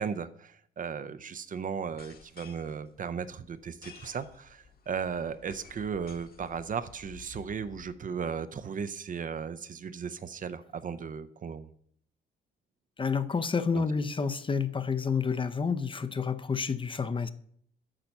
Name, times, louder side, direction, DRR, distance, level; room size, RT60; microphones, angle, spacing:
voice 1, 0.0-11.7 13.7-14.0, right 6 dB, 45° right, 13 dB, 0.6 m, -36 dB
sound 1, 1.8-8.0, left 6 dB, 50° left, 1.3 m, -53 dB
voice 2, 13.0-17.3, left 5 dB, 25° left, 12 dB, 0.6 m, -29 dB
8.9 x 5.7 x 5.4 m, 0.64 s
cardioid pair, 90°, 20 cm